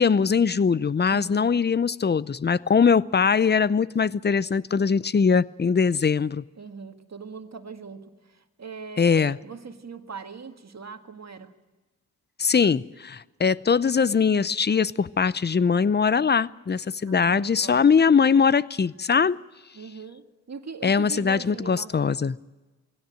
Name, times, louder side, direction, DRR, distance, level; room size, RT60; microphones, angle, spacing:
voice 1, 0.0-6.4 9.0-9.4 12.4-19.4 20.8-22.4, left 6 dB, 25° left, 0.6 m, -21 dB
voice 2, 1.1-1.6 6.6-11.5 17.0-17.8 19.7-21.9, right 5 dB, 40° right, 1.9 m, -40 dB
20.5 x 17.0 x 9.1 m
supercardioid pair, 50°, 40 cm